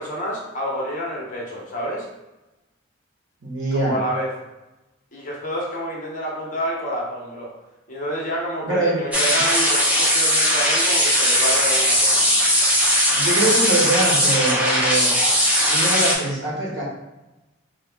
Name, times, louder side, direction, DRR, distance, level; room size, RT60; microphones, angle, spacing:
voice 1, 0.0-2.1 3.7-4.3 5.1-7.5 7.9-12.2, equal, 40° left, -3 dB, 0.9 m, -28 dB
voice 2, 3.4-4.0 8.6-9.0 9.3-9.4 13.1-15.3 15.7-16.8, right 2 dB, 70° right, -5 dB, 1.2 m, -23 dB
sound 1, 9.1-16.1, equal, 10° right, 0.5 m, -19 dB
3.4 x 2.4 x 3.4 m, 1.0 s
head